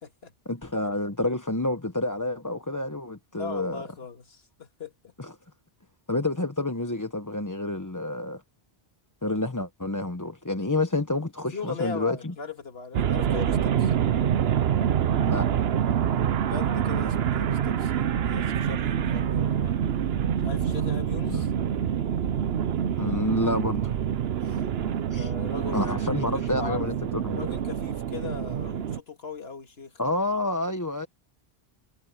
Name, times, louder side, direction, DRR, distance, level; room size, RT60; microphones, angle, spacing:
voice 1, 0.5-3.8 5.2-5.3 6.1-8.4 9.2-12.3 15.2-15.5 21.3-21.4 23.0-23.9 25.1-25.3 25.7-27.5 30.0-31.1, left 2 dB, 20° left, 1.0 m, -29 dB
voice 2, 3.3-5.1 11.5-13.9 16.4-19.8 20.4-21.5 24.4-24.6 25.1-25.8 26.2-26.9 27.4-30.0, left 5 dB, 75° left, 2.2 m, -39 dB
sound 1, 12.9-29.0, right 9 dB, 75° right, 1.0 m, -26 dB
omnidirectional pair, 1.0 m